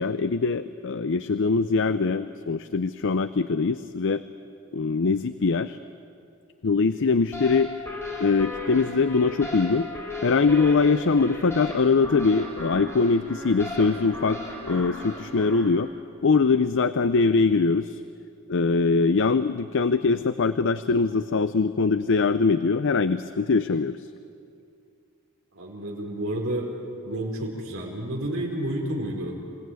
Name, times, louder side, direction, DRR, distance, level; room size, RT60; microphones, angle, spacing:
voice 1, 0.0-4.2 4.7-5.8 6.6-7.8 8.2-9.9 10.2-14.4 14.7-15.9 16.2-18.0 18.5-24.0, left 4 dB, 60° left, 13 dB, 0.6 m, -22 dB
sound 1, 7.3-15.7, left 2 dB, 10° left, 4.4 m, -36 dB
voice 2, 25.5-26.7 27.0-29.4, right 1 dB, 65° right, -1 dB, 4.9 m, -30 dB
27.5 x 17.5 x 9.4 m, 2.5 s
head